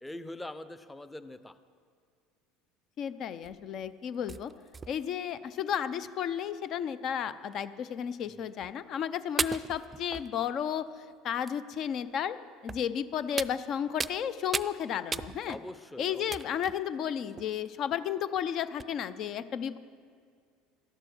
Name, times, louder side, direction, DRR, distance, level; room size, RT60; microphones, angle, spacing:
voice 1, 0.0-1.5 8.4-8.5 15.5-16.4, left 1 dB, 10° left, 12 dB, 0.8 m, -43 dB
voice 2, 3.0-4.5 4.9-12.4 12.6-15.6 16.0-19.8, left 9 dB, 50° left, 14 dB, 0.6 m, -33 dB
sound 1, 3.4-3.7 4.3-5.3 6.0-6.1 6.4-6.5 7.5-7.6 8.6-8.7 9.4-10.8 11.5-11.6 12.7-12.9 13.4-14.2 14.5-14.8 15.1-15.7 16.3-16.8 17.3-17.7 18.4-18.5 18.8-18.9, right 4 dB, 25° right, 0.4 m, -36 dB
13.0 x 11.5 x 6.2 m, 2.2 s
hypercardioid pair, 70°, 0 cm